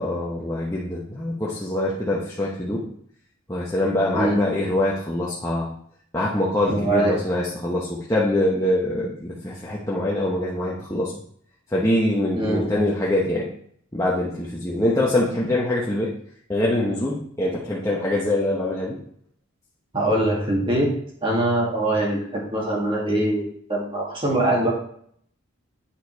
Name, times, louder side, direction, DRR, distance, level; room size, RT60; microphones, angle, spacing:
voice 1, 0.0-2.9 3.5-5.7 6.1-11.1 11.7-13.5 13.9-16.1 16.5-19.0, left 1 dB, 15° left, -5 dB, 1.1 m, -24 dB
voice 2, 6.7-7.2 12.3-12.8 19.9-20.9 21.2-23.4 23.7-24.7, right 1 dB, 25° right, -4 dB, 2.3 m, -22 dB
8.7 x 5.6 x 4.7 m, 0.65 s
head